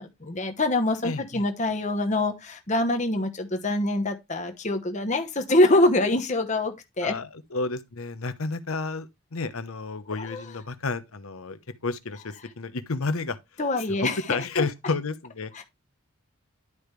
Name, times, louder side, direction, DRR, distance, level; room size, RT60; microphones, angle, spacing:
voice 1, 0.0-7.2 10.1-10.4 13.6-14.6 15.6-15.7, left 2 dB, 35° left, 1.0 m, -25 dB
voice 2, 1.0-1.4 7.0-13.4 14.0-15.5, left 3 dB, 75° left, 0.9 m, -31 dB
11.0 x 5.0 x 3.2 m
head